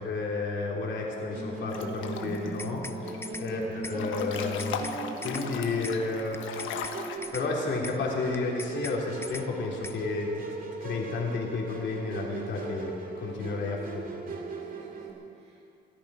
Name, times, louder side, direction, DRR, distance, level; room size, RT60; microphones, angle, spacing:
voice 1, 0.0-2.9 3.4-4.9 5.2-6.4 7.3-10.5 10.8-14.4, left 3 dB, 65° left, -2 dB, 3.2 m, -32 dB
Musical instrument, 1.3-15.1, right 3 dB, 45° right, 2.5 m, -38 dB
Breathing / Bathtub (filling or washing) / Splash splatter, 1.7-2.5 2.9-3.5 3.9-7.2, left 6 dB, 80° left, 1.2 m, -37 dB
sound 1, 2.3-3.0 3.2-3.5 3.8-4.0 4.3-5.0 5.2-5.5 5.8-6.0 6.3-7.0 7.2-7.5 7.8-8.0 8.3-9.0 9.2-9.5 9.8-10.0, left 2 dB, 10° left, 0.6 m, -40 dB
voice 2, 13.2-13.5 14.6-15.7, right 3 dB, 70° right, -7 dB, 5.2 m, -53 dB
21.0 x 13.5 x 5.0 m, 2.5 s
cardioid pair, 90°, 20 cm